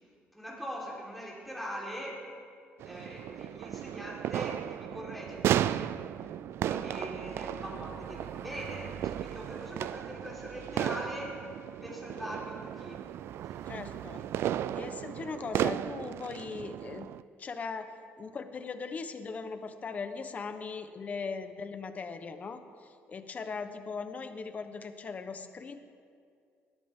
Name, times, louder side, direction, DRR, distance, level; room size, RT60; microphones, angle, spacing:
voice 1, 0.3-2.3 2.8-5.9 6.6-11.4 11.8-13.1 14.1-14.3, equal, ahead, -5 dB, 4.0 m, -42 dB
sound 1, 2.8-17.2, right 11 dB, 65° right, 0.4 m, -35 dB
voice 2, 13.7-14.3 14.7-17.1 17.4-17.9 18.2-25.8, left 5 dB, 35° left, 9 dB, 1.0 m, -39 dB
20.0 x 14.5 x 3.7 m, 2.2 s
cardioid pair, 135°, 5 cm